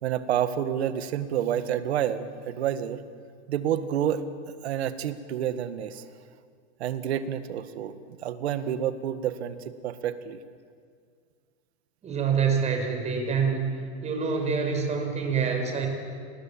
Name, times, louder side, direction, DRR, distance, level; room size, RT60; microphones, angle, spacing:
voice 1, 0.0-3.0 3.5-4.2 4.6-6.0 6.8-7.9 8.2-10.4, right 10 dB, 80° right, 11 dB, 1.8 m, -29 dB
voice 2, 12.0-13.7 14.0-15.9, right 6 dB, 20° right, 4 dB, 5.4 m, -26 dB
29.0 x 20.5 x 8.8 m, 2.1 s
supercardioid pair, 145°, 32 cm